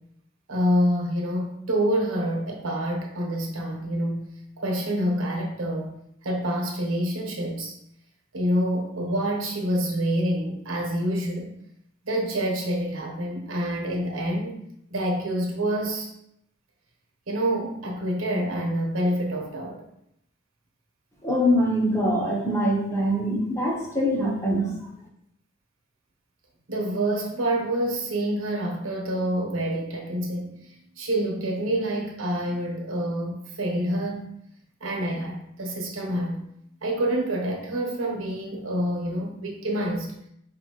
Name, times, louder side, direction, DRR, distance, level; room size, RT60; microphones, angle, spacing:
voice 1, 0.5-4.3 4.6-6.0 6.2-7.7 8.3-11.5 12.0-14.6 14.9-16.1 17.3-19.8 26.7-34.3 34.8-36.4 36.8-40.1, right 1 dB, 90° right, 0 dB, 0.9 m, -27 dB
voice 2, 21.2-24.7, equal, 15° left, -3 dB, 0.8 m, -23 dB
5.4 x 2.6 x 2.9 m, 0.76 s
head